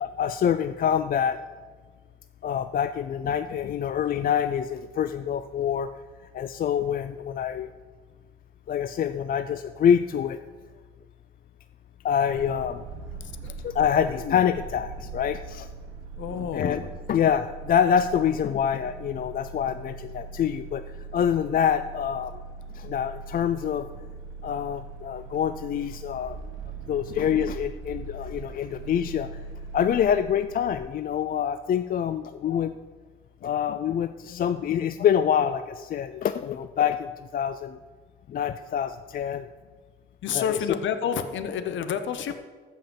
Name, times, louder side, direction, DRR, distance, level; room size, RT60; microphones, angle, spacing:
voice 1, 0.0-1.4 2.4-5.9 6.3-7.7 8.7-10.4 12.0-12.8 13.6-15.7 16.5-16.8 17.1-20.8 21.1-22.4 22.7-23.9 24.4-26.4 26.9-29.3 29.7-32.7 33.4-37.8 38.3-39.5 40.3-40.8, left 8 dB, 45° left, 11 dB, 0.4 m, -26 dB
sound 1, 12.3-30.8, right 4 dB, 80° right, 1.1 m, -41 dB
voice 2, 16.2-16.9 33.4-33.5 40.2-42.5, left 8 dB, 70° left, 10 dB, 0.9 m, -29 dB
14.5 x 5.7 x 5.3 m, 1.5 s
cardioid pair, 90°, 20 cm